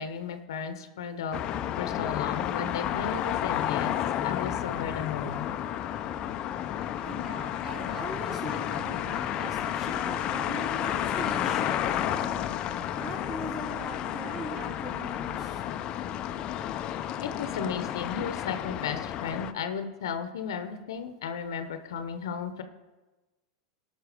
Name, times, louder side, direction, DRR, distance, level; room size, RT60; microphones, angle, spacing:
voice 1, 0.0-1.4 1.8-3.9 4.2-5.5 7.9-8.0 17.2-22.6, left 7 dB, 75° left, 9 dB, 0.9 m, -34 dB
sound 1, 1.3-19.5, left 11 dB, 40° left, 0.6 m, -31 dB
voice 2, 6.9-12.4 13.0-15.6, right 1 dB, 25° right, -2 dB, 4.0 m, -40 dB
16.0 x 6.1 x 5.0 m, 1.2 s
hypercardioid pair, 105°, 2 cm